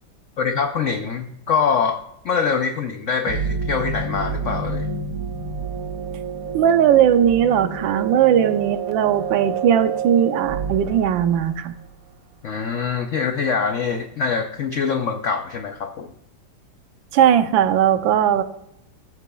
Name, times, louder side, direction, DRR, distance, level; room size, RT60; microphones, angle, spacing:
voice 1, 0.4-2.0 2.2-4.9 12.4-16.1, left 6 dB, 80° left, 6 dB, 0.6 m, -24 dB
sound 1, 3.3-11.9, right 5 dB, 55° right, 1.4 m, -29 dB
voice 2, 6.5-11.7 17.1-18.4, right 9 dB, 90° right, 10 dB, 1.4 m, -18 dB
14.0 x 8.3 x 2.3 m, 0.79 s
omnidirectional pair, 2.1 m